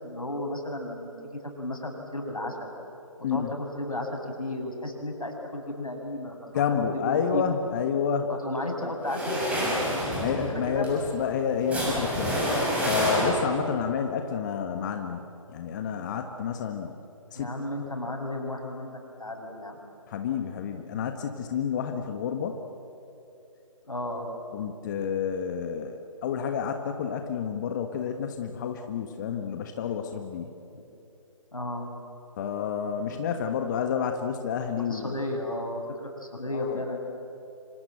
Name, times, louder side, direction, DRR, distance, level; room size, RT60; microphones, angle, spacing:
voice 1, 0.0-2.7 3.2-7.5 8.3-10.2 10.5-10.9 17.3-19.8 23.8-24.3 31.5-31.9 34.9-37.0, left 1 dB, 90° left, 2 dB, 6.6 m, -34 dB
voice 2, 6.5-8.3 10.2-12.4 12.8-16.9 17.3-17.5 20.1-22.6 24.5-30.5 32.4-35.3 36.5-36.8, left 7 dB, 35° left, 5 dB, 1.5 m, -29 dB
sound 1, 9.0-13.7, equal, 5° right, 6.7 m, -28 dB
27.0 x 26.0 x 7.9 m, 2.8 s
figure-of-eight pair, 145°, 18 cm